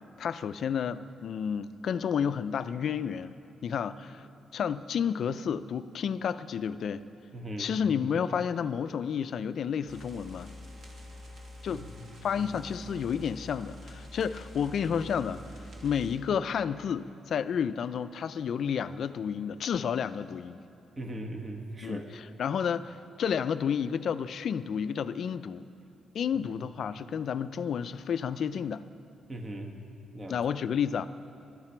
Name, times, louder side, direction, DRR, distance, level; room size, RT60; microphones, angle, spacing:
voice 1, 0.2-3.3 3.6-4.3 4.5-7.0 7.6-10.5 11.6-11.9 12.2-15.4 15.8-20.6 21.8-25.7 26.1-28.8 30.3-31.1, left 7 dB, 60° left, 13 dB, 0.4 m, -31 dB
voice 2, 7.3-7.7 11.7-11.9 12.4-12.5 21.0-22.1 26.3-26.5 29.3-29.7 30.1-30.4, right 1 dB, 25° right, 3 dB, 1.4 m, -39 dB
sound 1, 9.9-16.2, left 1 dB, 50° right, 2.2 m, -46 dB
20.5 x 12.5 x 4.5 m, 2.6 s
cardioid pair, 115°, 0 cm